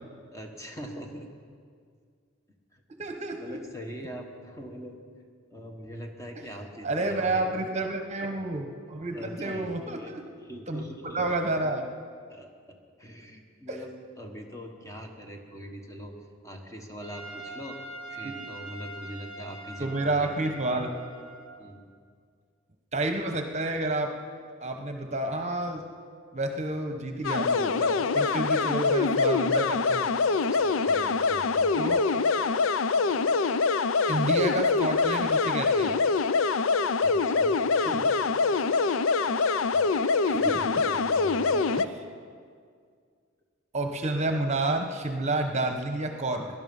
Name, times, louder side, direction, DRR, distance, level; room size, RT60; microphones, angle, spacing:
voice 1, 0.3-1.3 2.7-2.8 3.4-5.0 5.5-7.6 9.1-10.1 10.4-11.3 12.3-16.1 16.4-17.8 18.1-20.3 21.6-21.8 30.5-32.0 37.0-38.1 39.7-39.8 40.3-41.8, equal, 15° left, 2 dB, 1.3 m, -42 dB
voice 2, 3.0-3.6 6.4-6.5 6.8-10.3 10.7-10.9 11.1-11.9 13.7-13.8 18.2-18.5 19.8-20.9 22.9-24.1 24.6-25.9 26.3-30.1 31.7-32.1 34.1-36.0 40.3-40.8 43.7-46.5, right 2 dB, 35° right, 5 dB, 1.0 m, -30 dB
Trumpet, 17.0-21.6, right 2 dB, 35° left, 3.7 m, -43 dB
sound 1, 27.2-41.9, left 4 dB, 75° left, 0.5 m, -24 dB
18.5 x 11.0 x 5.4 m, 2.1 s
head